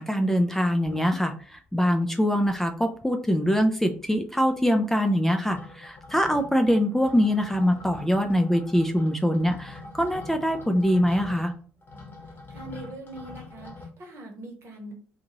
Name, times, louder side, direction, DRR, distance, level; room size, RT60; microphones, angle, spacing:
voice 1, 0.0-11.5, equal, 5° left, 5 dB, 0.4 m, -23 dB
sound 1, 0.8-1.7 2.1-2.2 2.4-3.0 3.3-13.9, left 3 dB, 35° left, 1.0 m, -44 dB
voice 2, 12.5-14.9, right 1 dB, 50° right, 2 dB, 1.0 m, -42 dB
2.6 x 2.4 x 3.0 m, 0.42 s
figure-of-eight pair, 50°, 6 cm